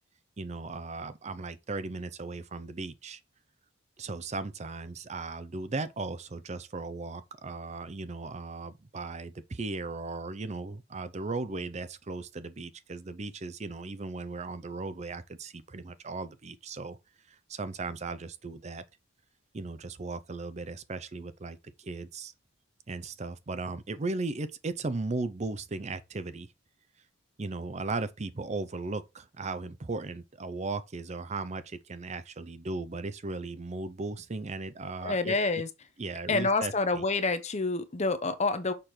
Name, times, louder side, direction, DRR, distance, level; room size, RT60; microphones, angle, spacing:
voice 1, 0.4-3.2 4.0-17.0 17.3-18.8 19.5-22.3 22.9-26.5 27.4-35.6 36.0-37.0, right 3 dB, 35° right, 0.5 m, -37 dB
voice 2, 35.0-35.7 36.3-38.7, left 3 dB, 35° left, 0.8 m, -27 dB
6.8 x 5.7 x 3.2 m
head